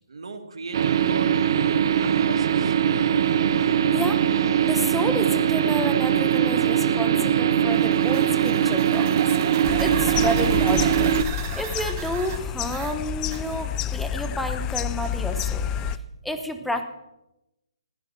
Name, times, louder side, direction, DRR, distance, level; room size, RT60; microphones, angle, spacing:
voice 1, 0.1-3.4, right 3 dB, 75° right, 6 dB, 2.3 m, -38 dB
sound 1, 0.7-11.2, right 9 dB, 50° right, 0.5 m, -21 dB
voice 2, 3.9-4.2 4.6-11.1 11.6-15.7 16.2-16.8, left 1 dB, ahead, 7 dB, 1.1 m, -30 dB
sound 2, 7.7-13.8, right 10 dB, 30° right, 1.2 m, -36 dB
sound 3, 9.6-16.0, left 8 dB, 15° left, 0.5 m, -29 dB
15.0 x 13.0 x 6.0 m, 0.93 s
hypercardioid pair, 155°, 3 cm